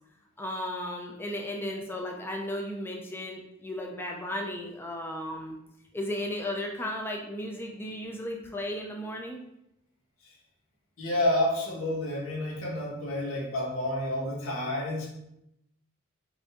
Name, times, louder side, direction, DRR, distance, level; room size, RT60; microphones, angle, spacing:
voice 1, 0.4-5.6 5.9-9.4, left 1 dB, 10° left, 0 dB, 0.4 m, -35 dB
voice 2, 11.0-15.1, left 1 dB, 85° left, -3 dB, 1.4 m, -29 dB
5.0 x 2.6 x 3.6 m, 0.83 s
head